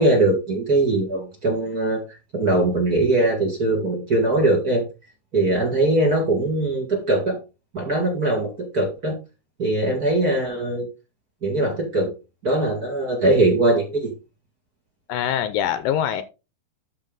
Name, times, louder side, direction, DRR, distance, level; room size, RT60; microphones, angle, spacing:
voice 1, 0.0-2.0 2.3-4.8 5.3-7.4 7.7-9.1 9.6-10.9 11.4-12.1 12.4-14.1, right 2 dB, 30° right, 2.1 m, -21 dB
voice 2, 15.1-16.2, left 10 dB, 80° left, 2.2 m, -23 dB
12.0 x 4.7 x 3.8 m
omnidirectional pair, 4.2 m